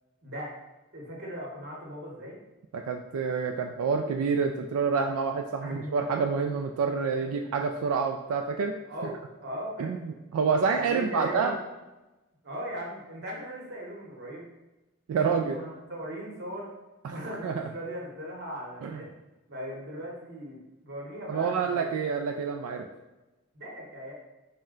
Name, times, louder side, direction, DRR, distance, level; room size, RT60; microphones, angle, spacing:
voice 1, 0.2-0.6 0.9-2.4 5.6-6.1 7.2-7.3 8.8-9.9 10.8-11.6 12.4-14.5 15.1-16.7 17.1-19.1 19.5-22.0 23.5-24.1, equal, 50° right, -2 dB, 1.0 m, -39 dB
voice 2, 2.7-8.7 9.8-11.6 15.1-15.6 17.0-17.5 18.8-19.0 21.3-22.9, right 5 dB, 85° right, 4 dB, 0.3 m, -28 dB
4.2 x 2.2 x 3.7 m, 1.1 s
head